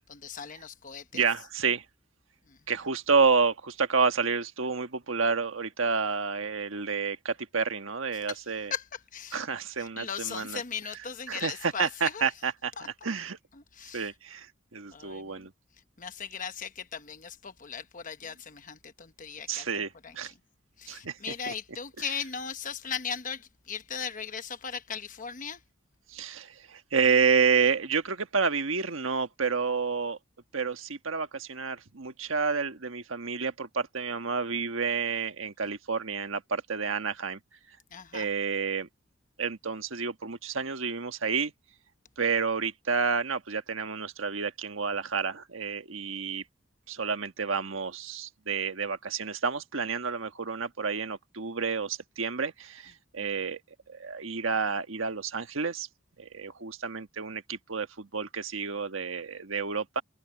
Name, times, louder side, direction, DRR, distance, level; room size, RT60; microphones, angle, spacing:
voice 1, 0.1-1.2 2.5-2.6 8.3-8.4 8.7-9.4 9.8-12.3 12.8-12.9 13.5-14.1 14.9-15.5 16.0-19.7 20.0-20.1 20.8-25.6 37.9-38.3 53.2-53.3, left 7 dB, 40° left, 1.0 m, -38 dB
voice 2, 1.1-1.8 2.7-8.7 9.3-10.6 11.3-13.4 13.9-15.5 19.5-20.3 20.9-21.5 26.1-30.2 30.5-37.4 37.7-37.8 38.1-38.9 39.4-41.5 42.2-46.4 46.9-53.6 53.9-55.9 56.2-60.0, right 5 dB, 90° right, 1.4 m, -29 dB
head